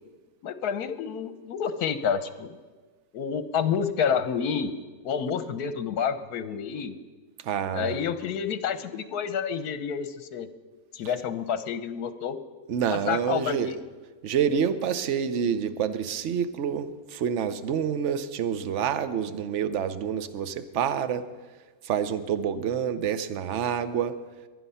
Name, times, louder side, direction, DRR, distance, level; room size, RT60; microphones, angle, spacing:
voice 1, 0.4-2.6 3.1-4.7 5.0-6.9 7.7-10.5 10.9-12.4 12.9-13.8, left 7 dB, 75° left, 12 dB, 1.4 m, -29 dB
voice 2, 7.4-8.0 12.7-13.8 14.2-21.2 21.8-24.1, right 8 dB, 55° right, 12 dB, 1.0 m, -27 dB
22.0 x 9.9 x 5.6 m, 1.3 s
omnidirectional pair, 1.6 m